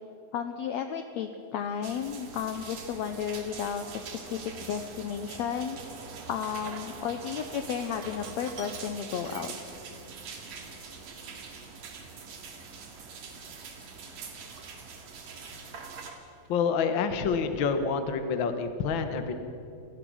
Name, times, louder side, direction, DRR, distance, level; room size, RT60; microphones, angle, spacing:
voice 1, 0.3-5.8 6.3-9.5, left 8 dB, 80° left, 7 dB, 1.5 m, -33 dB
sound 1, 1.8-16.1, right 4 dB, 70° right, 3.6 m, -44 dB
Sink (filling or washing), 1.9-2.1 2.7-3.3 3.7-3.8 4.1-7.2 7.5-10.1 10.5-10.6 11.3-13.8 14.1-14.9 15.2-16.5, right 5 dB, 45° right, 1.9 m, -49 dB
voice 2, 16.5-19.3, left 5 dB, 65° left, 8 dB, 1.2 m, -27 dB
28.0 x 15.5 x 6.3 m, 2.7 s
omnidirectional pair, 4.1 m